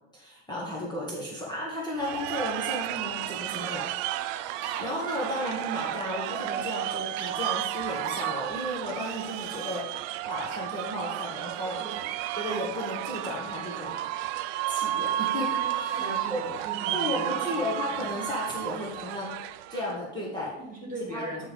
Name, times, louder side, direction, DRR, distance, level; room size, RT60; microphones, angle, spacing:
voice 1, 0.1-3.9 4.2-9.9 10.2-11.8 12.4-14.0 14.7-16.4 16.9-19.4 19.7-20.5 21.1-21.2, left 1 dB, 10° left, -5 dB, 1.6 m, -34 dB
sound 1, 1.9-20.0, right 12 dB, 70° right, 0.5 m, -32 dB
sound 2, 4.6-4.9 5.8-6.0 7.1-7.3 8.0-8.3 9.0-9.8 10.5-10.6, right 8 dB, 45° right, 0.9 m, -39 dB
voice 2, 15.9-17.3 17.5-17.6 17.9-18.0 20.6-21.4, right 1 dB, 20° right, -1 dB, 2.7 m, -38 dB
9.4 x 3.6 x 5.1 m, 0.89 s
supercardioid pair, 125°, 38 cm